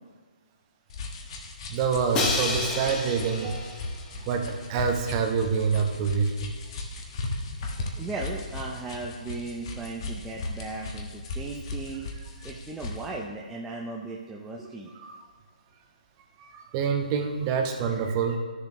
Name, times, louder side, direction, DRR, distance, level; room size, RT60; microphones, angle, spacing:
sound 1, 0.9-13.1, left 2 dB, 35° left, 1.3 m, -37 dB
voice 1, 1.7-3.8 4.3-6.5 15.0-15.2 16.4-18.4, right 6 dB, 25° right, 4 dB, 0.8 m, -27 dB
Crash cymbal, 2.1-4.2, left 3 dB, 15° left, 0.9 m, -30 dB
voice 2, 8.0-12.1 12.4-14.9, right 3 dB, 5° right, -2 dB, 0.5 m, -37 dB
13.0 x 6.9 x 3.0 m, 1.5 s
hypercardioid pair, 155°, 5 cm